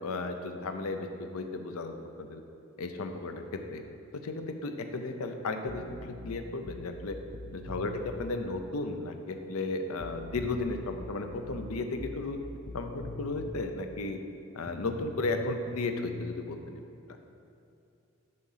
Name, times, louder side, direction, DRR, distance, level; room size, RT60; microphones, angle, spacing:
voice 1, 0.0-2.4 2.8-3.8 4.1-7.2 7.5-12.4 12.7-14.2 14.5-16.8, left 2 dB, 85° left, 6 dB, 0.6 m, -34 dB
sound 1, 5.7-8.3 10.0-13.6 14.7-16.3, left 2 dB, 30° left, 0.4 m, -43 dB
6.6 x 4.9 x 5.6 m, 2.6 s
head